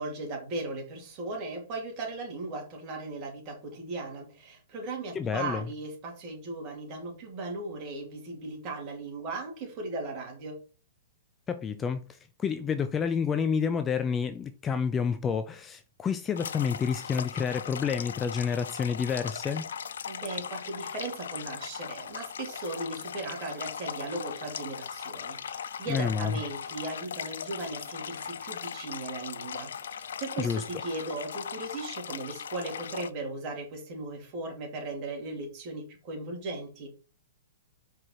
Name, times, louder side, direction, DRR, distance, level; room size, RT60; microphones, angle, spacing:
voice 1, 0.0-10.6 20.1-36.9, right 2 dB, 35° right, 2.9 m, -37 dB
voice 2, 5.1-5.6 11.5-19.7 25.9-26.3 30.4-30.6, left 6 dB, 15° left, 0.5 m, -29 dB
sound 1, 16.4-33.1, left 7 dB, 80° left, 0.5 m, -39 dB
5.4 x 4.9 x 4.5 m
hypercardioid pair, 145°, 0 cm